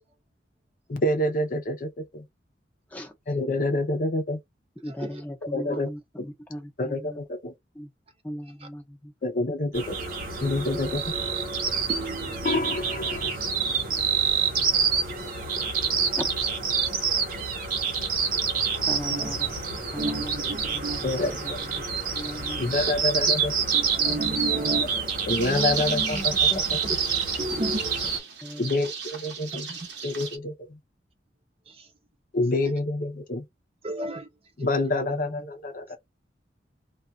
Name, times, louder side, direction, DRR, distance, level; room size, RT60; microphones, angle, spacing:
voice 1, 0.9-2.2 3.3-4.4 5.5-5.9 6.8-7.5 9.2-10.0 10.4-11.1 12.4-13.3 21.0-21.6 22.6-23.5 25.3-26.3 26.7-26.8 28.6-29.7 30.0-30.8 32.3-33.4 34.6-36.0, left 2 dB, 50° left, 0.6 m, -27 dB
voice 2, 4.8-7.2 7.7-7.9 8.2-9.1 16.2-16.3 18.9-21.8 22.1-22.8 25.4-27.0 27.5-28.0 28.4-28.8 34.9-35.5, equal, 10° left, 0.8 m, -38 dB
sound 1, 9.7-28.2, right 6 dB, 50° right, 0.9 m, -27 dB
voice 3, 11.9-12.7 19.1-19.3 20.0-21.0 23.7-25.2 27.4-27.9 29.7-29.8 33.8-34.3, right 1 dB, 35° right, 0.5 m, -32 dB
sound 2, 25.3-30.4, right 5 dB, 75° right, 0.9 m, -38 dB
2.4 x 2.3 x 4.0 m
head